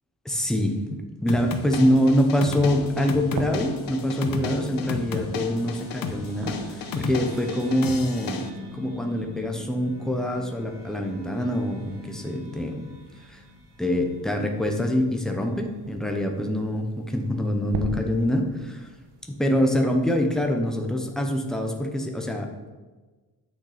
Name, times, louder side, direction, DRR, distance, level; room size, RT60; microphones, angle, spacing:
voice 1, 0.2-8.4 8.7-12.8 13.3-13.4 13.8-18.9 19.3-22.5, equal, ahead, 3 dB, 0.8 m, -25 dB
sound 1, 1.3-8.5, left 4 dB, 60° left, 0.9 m, -33 dB
sound 2, 2.2-20.6, right 3 dB, 75° right, 1.3 m, -44 dB
sound 3, 4.0-14.8, left 2 dB, 25° right, 3.0 m, -43 dB
9.3 x 6.5 x 5.0 m, 1.3 s
wide cardioid pair, 170°, 39 cm